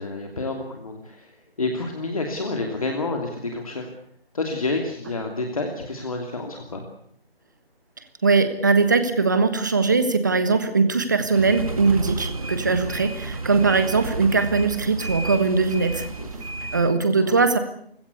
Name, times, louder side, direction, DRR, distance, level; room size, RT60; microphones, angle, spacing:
voice 1, 0.0-3.9 4.3-6.8 12.8-12.9 16.2-16.7 17.2-17.4, left 3 dB, 35° left, 3 dB, 2.9 m, -29 dB
voice 2, 8.2-16.1 16.7-17.6, right 4 dB, 20° right, 10 dB, 1.4 m, -20 dB
sound 1, 11.3-16.9, right 3 dB, 35° right, 2.5 m, -32 dB
29.5 x 17.0 x 8.3 m, 0.68 s
figure-of-eight pair, 175°, 30 cm